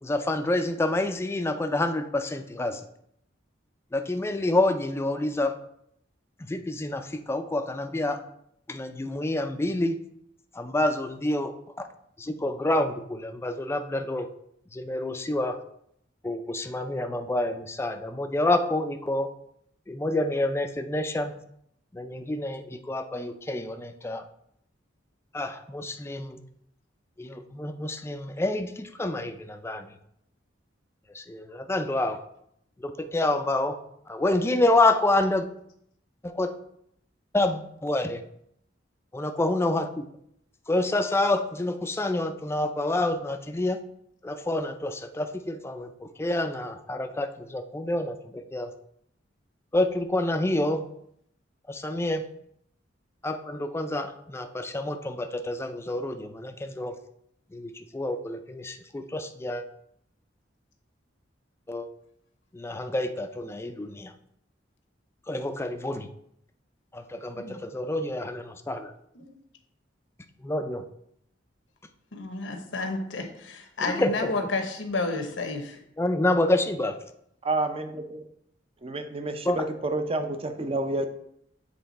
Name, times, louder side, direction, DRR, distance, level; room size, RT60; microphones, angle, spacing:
voice 1, 0.0-2.8 3.9-5.6 6.5-8.2 8.7-10.0 10.5-11.9 12.2-14.3 14.7-15.6 16.2-19.3 19.9-21.3 21.9-24.2 25.3-26.4 27.2-29.9 31.1-32.2 32.8-33.8 34.1-35.5 36.2-36.6 37.3-38.2 39.1-40.1 40.7-43.8 44.2-48.7 49.7-50.8 51.7-52.3 53.2-57.0 57.5-59.6 61.7-61.9 62.5-64.1 65.3-66.1 66.9-68.9 70.4-70.8 73.8-74.3 76.0-77.0 79.5-79.6, left 2 dB, 15° left, 7 dB, 0.4 m, -28 dB
voice 2, 72.1-75.8, left 3 dB, 80° left, 4 dB, 1.0 m, -31 dB
voice 3, 77.4-78.2 78.8-81.1, right 2 dB, 30° right, 7 dB, 0.6 m, -29 dB
7.8 x 3.4 x 4.1 m, 0.72 s
head